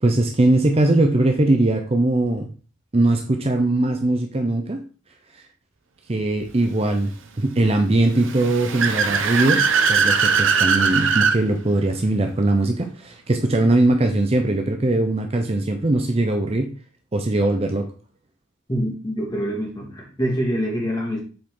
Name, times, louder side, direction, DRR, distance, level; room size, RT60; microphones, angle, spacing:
voice 1, 0.0-2.5 2.9-4.8 6.1-16.7 17.1-17.9, right 2 dB, 30° right, 4 dB, 0.6 m, -20 dB
Car / Accelerating revving vroom, 8.1-11.4, right 5 dB, 70° right, 0.8 m, -20 dB
voice 2, 18.7-21.2, equal, 20° left, -2 dB, 2.1 m, -25 dB
7.7 x 4.3 x 3.6 m, 0.38 s
head